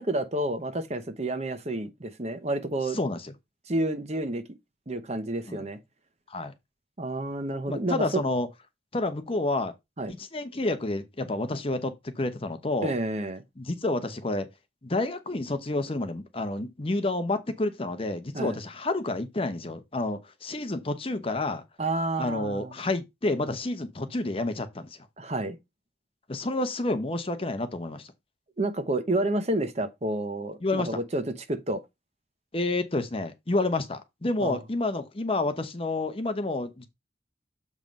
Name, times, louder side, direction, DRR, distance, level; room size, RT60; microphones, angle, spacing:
voice 1, 0.0-3.0 3.7-4.4 4.9-5.8 7.0-8.2 10.0-10.1 12.8-13.4 18.3-18.6 21.8-22.7 25.2-25.6 28.6-31.8 34.4-34.6, right 1 dB, 35° right, 0.9 m, -29 dB
voice 2, 3.0-3.3 5.5-5.6 6.3-6.5 7.7-8.5 8.9-9.7 10.2-12.9 13.6-14.5 14.8-21.6 22.2-24.9 26.3-28.1 30.6-30.9 32.5-36.9, left 2 dB, 30° left, 0.9 m, -29 dB
7.4 x 3.2 x 5.2 m
head